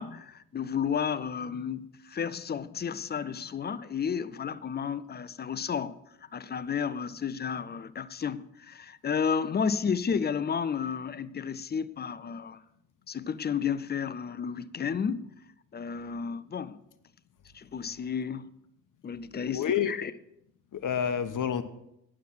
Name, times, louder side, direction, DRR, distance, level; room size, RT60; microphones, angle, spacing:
voice 1, 0.0-5.9 6.3-12.6 13.1-15.3 15.7-16.8 17.5-18.5 19.0-20.1, left 6 dB, 25° left, 0.5 m, -32 dB
voice 2, 19.4-19.9 20.7-21.6, left 8 dB, 45° left, 0.9 m, -28 dB
9.2 x 7.2 x 6.4 m
hypercardioid pair, 50°, 43 cm